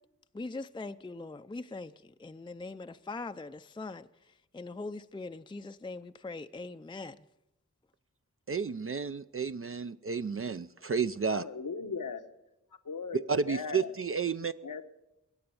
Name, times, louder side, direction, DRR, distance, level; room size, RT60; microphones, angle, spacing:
voice 1, 0.3-4.1 4.5-7.2, left 3 dB, 15° left, 0.5 m, -41 dB
voice 2, 8.5-11.4 13.3-14.5, right 5 dB, 45° right, 0.5 m, -31 dB
voice 3, 11.3-12.2 12.8-13.9 14.6-15.0, left 5 dB, 85° left, 1.1 m, -38 dB
22.0 x 8.8 x 6.9 m
cardioid pair, 45°, 31 cm